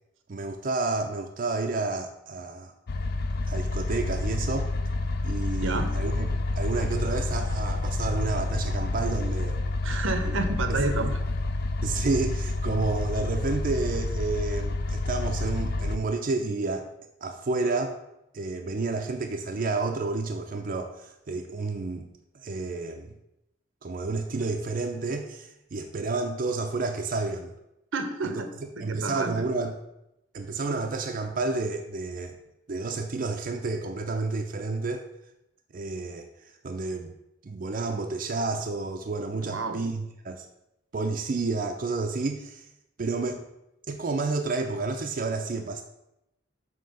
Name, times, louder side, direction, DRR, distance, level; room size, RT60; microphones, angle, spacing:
voice 1, 0.3-2.7 3.4-4.7 5.2-6.3 6.6-9.6 10.3-10.4 10.7-10.8 11.8-16.9 17.2-18.0 18.3-22.1 22.3-23.1 23.8-27.5 28.2-28.4 28.8-29.8 30.3-32.4 32.7-35.1 35.7-37.1 37.4-40.5 40.9-42.7 43.0-43.4 43.9-45.8, right 3 dB, 45° right, 3 dB, 0.5 m, -30 dB
sound 1, 2.9-16.0, left 2 dB, 55° left, 0.4 m, -29 dB
voice 2, 5.6-5.9 9.8-11.1 27.9-28.5 28.8-29.4 39.4-39.8, right 3 dB, 80° right, 7 dB, 0.7 m, -30 dB
7.4 x 2.9 x 5.4 m, 0.86 s
head